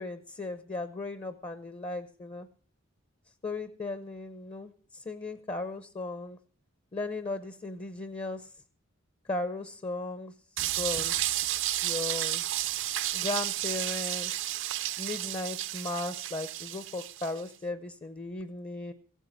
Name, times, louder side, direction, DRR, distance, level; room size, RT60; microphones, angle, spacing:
voice 1, 0.0-2.5 3.4-6.4 6.9-8.5 9.3-10.3 10.8-11.2 11.8-12.4 13.1-14.3 15.0-18.9, left 2 dB, 30° left, 11 dB, 0.7 m, -36 dB
sound 1, 10.6-17.4, right 14 dB, 60° right, 0.6 m, -32 dB
15.0 x 9.2 x 6.5 m, 0.42 s
head